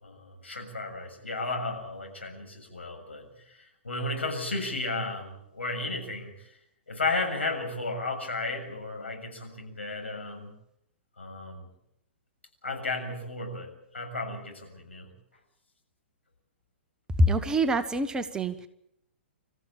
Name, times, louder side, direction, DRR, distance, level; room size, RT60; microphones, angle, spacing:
voice 1, 0.0-6.6 6.9-10.5 11.2-11.7 12.6-15.1, left 2 dB, 75° left, 3 dB, 7.2 m, -34 dB
voice 2, 17.2-18.7, right 1 dB, 10° right, 9 dB, 1.3 m, -25 dB
27.5 x 14.5 x 8.7 m, 0.78 s
figure-of-eight pair, 115°, 6 cm